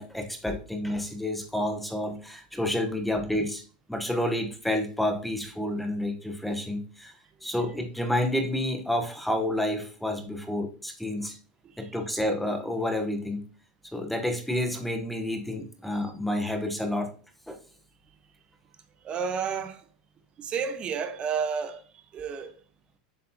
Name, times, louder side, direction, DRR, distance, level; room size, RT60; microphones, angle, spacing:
voice 1, 0.0-3.6 3.9-7.1 7.4-11.4 11.8-13.4 13.9-17.1 17.5-17.6, left 1 dB, ahead, 0.9 m, -29 dB
voice 2, 19.0-19.8 20.4-21.8 22.1-22.5, right 6 dB, 25° right, 0.9 m, -31 dB
7.7 x 6.5 x 2.8 m
supercardioid pair, 150°, 4 cm